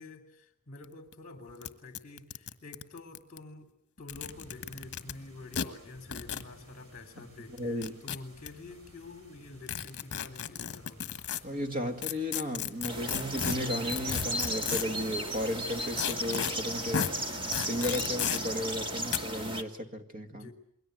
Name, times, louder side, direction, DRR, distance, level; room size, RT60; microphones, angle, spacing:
voice 1, 0.0-3.7 4.0-11.3 17.1-17.5 20.3-20.5, left 2 dB, 35° left, 6 dB, 3.1 m, -48 dB
sound 1, 0.8-0.9 1.1-1.2 1.6-1.7 1.9-3.4 4.0-5.1 5.5-5.7 6.1-6.5 7.6-8.5 9.7-11.4 12.0-15.0 16.0-16.5 16.9-17.1 17.5-18.4 19.1-19.2, left 8 dB, 50° left, 1.4 m, -33 dB
sound 2, 4.1-19.2, equal, 75° right, 6.7 m, -58 dB
voice 2, 7.6-8.0 11.4-17.1 17.7-20.5, left 1 dB, 40° right, 7 dB, 2.2 m, -34 dB
sound 3, 12.9-19.6, right 1 dB, 25° right, 1.8 m, -35 dB
28.5 x 22.0 x 7.9 m, 0.69 s
head